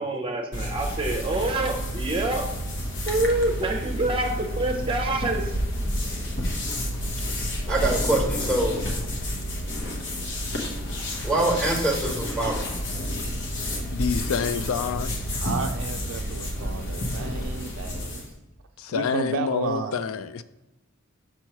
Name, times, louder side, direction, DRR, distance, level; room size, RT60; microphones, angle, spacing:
voice 1, 0.0-2.5 3.0-5.6, right 2 dB, 25° right, 3 dB, 0.7 m, -26 dB
sound 1, 0.5-18.3, equal, 55° left, 1.1 m, -30 dB
voice 2, 7.7-8.8 11.2-12.8, right 2 dB, 5° left, -2 dB, 1.2 m, -25 dB
voice 3, 13.9-15.2 18.8-20.4, left 6 dB, 80° left, 14 dB, 0.3 m, -27 dB
voice 4, 15.4-18.2 18.9-20.0, right 5 dB, 65° right, 5 dB, 0.3 m, -33 dB
6.2 x 3.1 x 5.7 m, 1.1 s
head